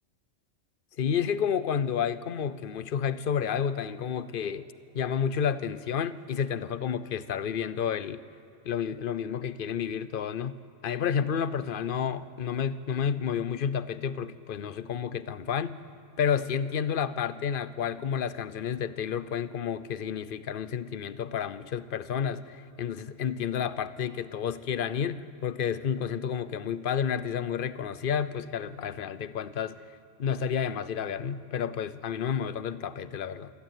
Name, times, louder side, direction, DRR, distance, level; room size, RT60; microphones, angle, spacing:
voice 1, 1.0-4.7 4.9-8.2 8.6-10.6 10.8-15.8 16.2-29.8 30.2-33.5, left 7 dB, 50° left, 15 dB, 0.8 m, -30 dB
26.5 x 12.0 x 9.2 m, 2.9 s
omnidirectional pair, 1.3 m